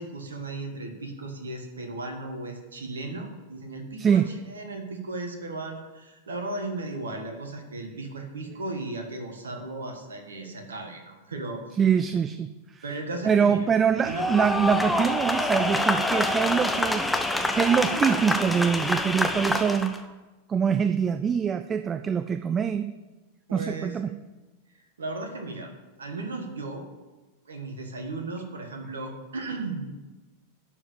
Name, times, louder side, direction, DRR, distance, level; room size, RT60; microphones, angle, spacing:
voice 1, 0.0-11.6 12.8-13.7 14.0-14.2 23.5-24.0 25.0-25.7 26.0-26.9 27.4-29.9, right 2 dB, 70° right, 5 dB, 1.6 m, -35 dB
voice 2, 11.8-12.8 13.2-17.0 17.5-20.1 20.5-22.9 23.5-24.1, right 7 dB, 20° right, 11 dB, 0.4 m, -24 dB
sound 1, 14.0-20.0, left 1 dB, 5° left, 0.9 m, -26 dB
11.5 x 4.9 x 8.4 m, 1.2 s
figure-of-eight pair, 90°, 0 cm